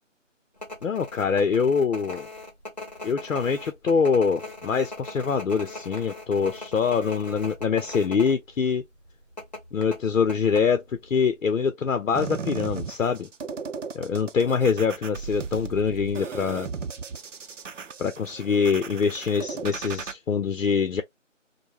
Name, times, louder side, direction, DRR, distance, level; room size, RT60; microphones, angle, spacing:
sound 1, 0.6-8.3 8.6-8.7 9.4-11.0 11.3-11.4, left 2 dB, 35° left, 0.8 m, -39 dB
voice 1, 0.8-2.3 3.0-8.8 9.7-13.3 13.9-16.7 18.0-21.0, left 6 dB, 80° left, 0.6 m, -24 dB
sound 2, 12.2-20.1, right 5 dB, 70° right, 0.6 m, -36 dB
3.3 x 2.1 x 2.4 m
figure-of-eight pair, 170°, 39 cm